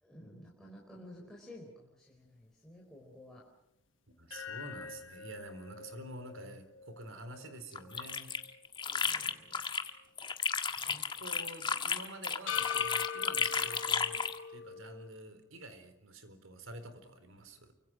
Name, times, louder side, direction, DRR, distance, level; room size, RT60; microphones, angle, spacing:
voice 1, 0.0-3.5 8.9-9.4 10.8-11.0, left 1 dB, ahead, -3 dB, 4.5 m, -53 dB
voice 2, 4.2-8.3 10.9-17.7, right 1 dB, 85° right, 10 dB, 4.1 m, -48 dB
sound 1, 4.3-8.6 9.0-9.1 12.5-15.1, left 7 dB, 75° left, 1.3 m, -42 dB
sound 2, 7.7-9.9 10.2-14.4, left 5 dB, 25° left, 1.5 m, -33 dB
29.5 x 24.5 x 6.1 m, 0.80 s
head